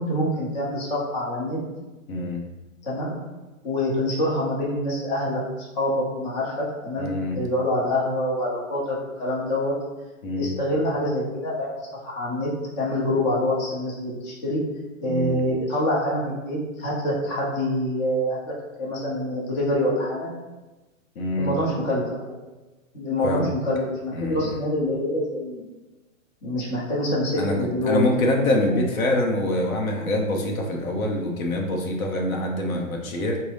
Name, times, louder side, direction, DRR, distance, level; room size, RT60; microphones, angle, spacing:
voice 1, 0.0-1.6 2.8-3.3 3.6-9.7 10.4-12.5 12.7-14.6 15.0-20.3 21.4-22.4 22.9-25.6 26.4-28.4, left 1 dB, 30° left, -5 dB, 0.9 m, -26 dB
voice 2, 2.1-2.4 7.0-7.4 10.2-10.5 15.0-15.4 21.2-21.5 23.2-23.5 24.1-24.6 27.3-33.4, left 1 dB, 85° left, 1 dB, 0.9 m, -25 dB
4.0 x 2.2 x 3.3 m, 1.1 s
hypercardioid pair, 165°, 41 cm